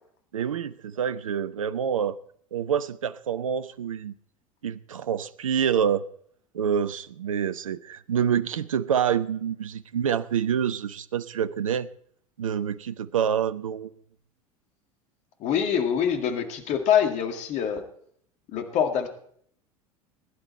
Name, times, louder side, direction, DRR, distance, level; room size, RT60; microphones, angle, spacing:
voice 1, 0.3-2.2 2.5-4.1 4.6-6.1 6.5-11.9 12.4-13.9, right 8 dB, 70° right, 0.8 m, -27 dB
voice 2, 15.4-17.9 18.5-19.1, left 8 dB, 40° left, 2.0 m, -25 dB
20.5 x 11.0 x 4.4 m
figure-of-eight pair, 75°, 18 cm